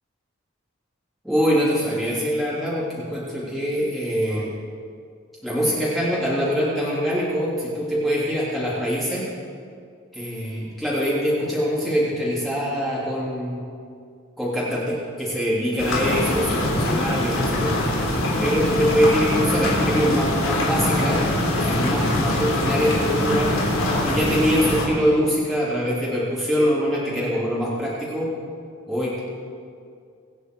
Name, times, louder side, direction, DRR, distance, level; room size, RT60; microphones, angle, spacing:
voice 1, 1.2-4.5 5.4-9.2 10.1-13.6 14.4-17.7 18.4-21.2 21.6-23.5 24.0-28.3 28.9-29.2, equal, ahead, -9 dB, 3.4 m, -23 dB
sound 1, 15.8-24.8, left 1 dB, 75° left, 3.8 m, -23 dB
25.5 x 9.9 x 4.8 m, 2.3 s
head